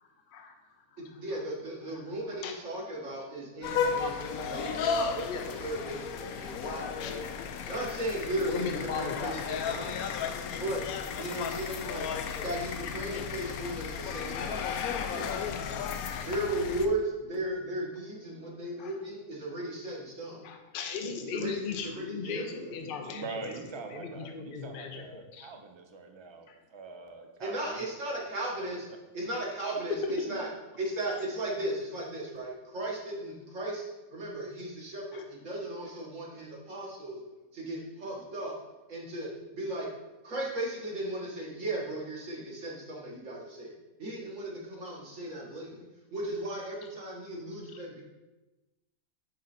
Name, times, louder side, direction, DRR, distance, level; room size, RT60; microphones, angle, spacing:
voice 1, 1.0-5.3 5.6-7.2 7.7-10.1 10.6-10.8 11.2-12.0 12.3-14.6 15.1-15.4 16.2-20.4 21.3-21.6 22.2-22.7 27.4-28.9 29.1-29.9 30.3-30.5 30.8-33.9 34.1-37.2 37.5-38.6 38.9-39.9 40.2-45.9 46.1-48.0, right 1 dB, 55° right, -3 dB, 1.9 m, -36 dB
sound 1, 3.6-16.9, left 6 dB, 80° left, 1.0 m, -34 dB
voice 2, 5.3-5.6 7.0-7.2 8.4-9.6 15.3-15.9 18.8-19.0 20.4-23.6 23.9-25.5 26.5-26.6 29.6-29.7 30.0-30.4 35.1-35.2, left 5 dB, 50° left, 4 dB, 0.7 m, -38 dB
voice 3, 23.1-27.9 28.6-28.7, right 4 dB, 30° right, 4 dB, 0.5 m, -43 dB
9.4 x 3.9 x 4.3 m, 1.1 s
omnidirectional pair, 1.6 m